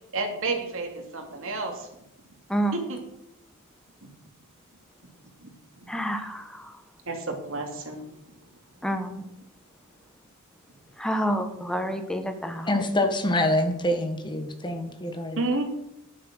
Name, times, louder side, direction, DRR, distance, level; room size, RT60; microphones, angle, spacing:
voice 1, 0.1-1.9 2.7-3.0 5.4-5.5 5.8-5.9 7.1-8.1 15.4-15.6, right 3 dB, 65° right, 2 dB, 2.7 m, -30 dB
voice 2, 5.9-6.7 8.8-9.2 11.0-12.8, equal, 5° left, 6 dB, 1.2 m, -28 dB
voice 3, 12.7-15.4, left 1 dB, 20° left, 6 dB, 1.5 m, -25 dB
11.0 x 8.7 x 6.4 m, 0.86 s
head